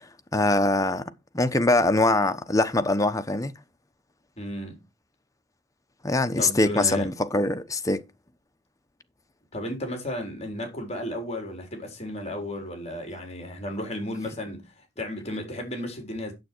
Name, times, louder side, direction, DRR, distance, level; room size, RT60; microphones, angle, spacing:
voice 1, 0.3-3.5 6.0-8.0, left 2 dB, 15° left, 0.9 m, -23 dB
voice 2, 4.4-4.8 6.4-7.1 9.5-16.3, left 1 dB, 35° left, 3.8 m, -34 dB
9.5 x 7.6 x 4.5 m
head